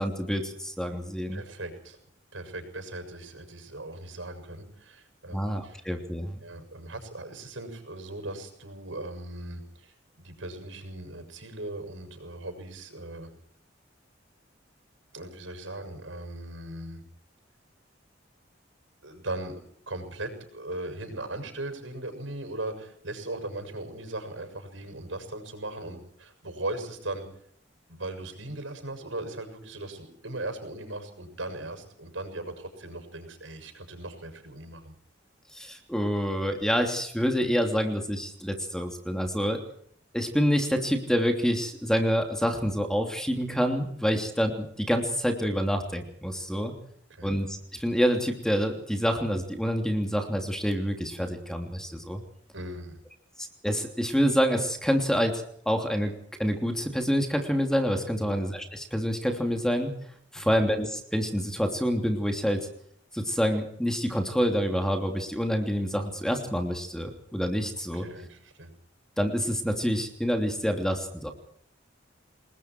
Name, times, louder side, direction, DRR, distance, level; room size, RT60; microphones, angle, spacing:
voice 1, 0.0-1.4 5.3-6.4 35.5-39.6 40.1-46.7 47.2-52.2 53.4-56.1 56.4-59.9 60.3-62.7 63.1-68.0 69.2-71.3, equal, 5° left, 4 dB, 3.1 m, -27 dB
voice 2, 1.3-2.0 2.3-5.8 6.4-13.3 15.1-17.0 19.0-19.6 19.9-27.2 27.9-34.9 44.1-44.2 47.1-47.3 52.5-53.0 58.2-58.4 60.3-60.5 67.9-68.7, right 2 dB, 85° right, 8 dB, 6.9 m, -38 dB
29.0 x 20.5 x 4.6 m, 0.66 s
head